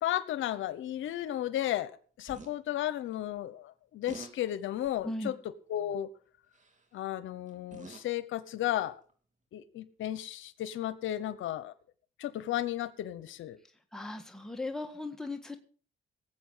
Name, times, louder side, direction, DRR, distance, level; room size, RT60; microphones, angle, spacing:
voice 1, 0.0-1.9 2.2-5.4 5.7-6.1 6.9-8.9 9.5-11.7 12.2-13.6, left 12 dB, 80° left, 14 dB, 1.0 m, -34 dB
sound 1, 2.3-2.5 4.1-4.3 4.8-5.1 6.5-6.8 7.5-8.2 9.1-9.2, right 3 dB, 40° right, 3.2 m, -47 dB
voice 2, 5.0-5.4 13.9-15.6, left 2 dB, 5° left, 4 dB, 1.7 m, -37 dB
18.5 x 7.9 x 5.6 m, 0.43 s
cardioid pair, 90°, 20 cm